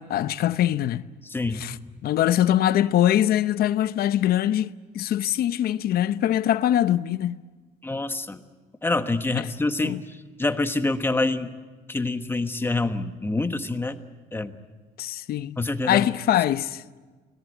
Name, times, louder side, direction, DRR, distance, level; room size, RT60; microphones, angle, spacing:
voice 1, 0.0-1.1 1.5-1.8 2.0-7.4 9.3-9.5 9.8-10.0 15.0-15.6 15.8-16.8, left 12 dB, 65° left, 0.8 m, -23 dB
voice 2, 1.2-1.8 7.8-8.4 8.8-11.5 11.9-14.0 14.3-14.5 15.6-16.1, left 2 dB, 15° left, 1.3 m, -26 dB
25.5 x 18.0 x 9.3 m
cardioid pair, 110°, 17 cm